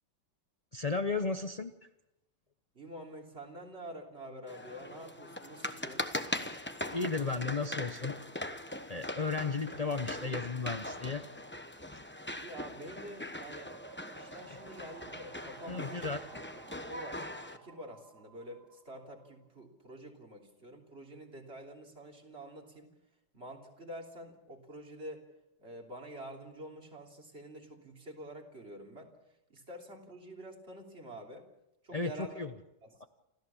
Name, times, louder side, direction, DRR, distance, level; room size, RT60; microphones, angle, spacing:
voice 1, 0.7-1.7 6.5-6.6 6.9-8.5 8.9-11.2 15.7-16.2 31.9-32.1 32.4-32.5 33.0-33.1, left 4 dB, 80° left, 7 dB, 0.3 m, -34 dB
voice 2, 2.7-6.1 12.4-13.8 14.1-16.1 16.9-17.2 17.5-22.9 23.3-25.3 25.6-29.1 29.5-31.5 31.8-32.5 32.8-33.1, equal, 30° right, 1 dB, 3.5 m, -47 dB
sound 1, 4.5-17.6, left 1 dB, 10° left, 0.6 m, -41 dB
sound 2, 13.6-19.3, right 5 dB, 60° right, 2.1 m, -54 dB
28.5 x 14.5 x 7.1 m, 0.90 s
omnidirectional pair, 2.0 m